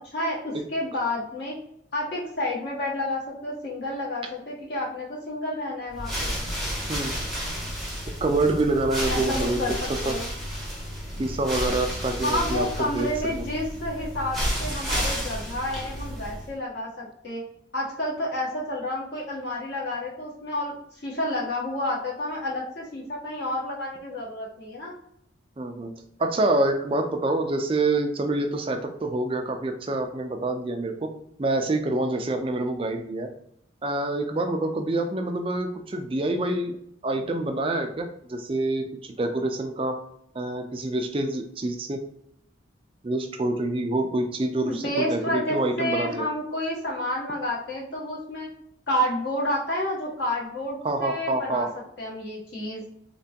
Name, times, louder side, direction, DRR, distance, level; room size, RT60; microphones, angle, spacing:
voice 1, 0.1-1.6 1.9-6.3 9.1-9.7 10.0-10.3 12.2-17.4 17.7-24.9 44.7-48.5 48.9-51.7 52.0-52.9, left 1 dB, 55° left, -5 dB, 1.3 m, -30 dB
sound 1, 5.9-16.6, equal, ahead, 0.8 m, -31 dB
voice 2, 8.2-9.6 10.1-10.2 11.2-12.7 12.9-13.1 13.4-13.5 25.6-25.9 26.2-30.9 31.4-33.3 33.8-36.8 37.0-40.0 40.3-42.0 43.0-46.2 50.8-51.7, right 2 dB, 25° right, 4 dB, 0.4 m, -26 dB
3.3 x 2.9 x 2.8 m, 0.73 s
head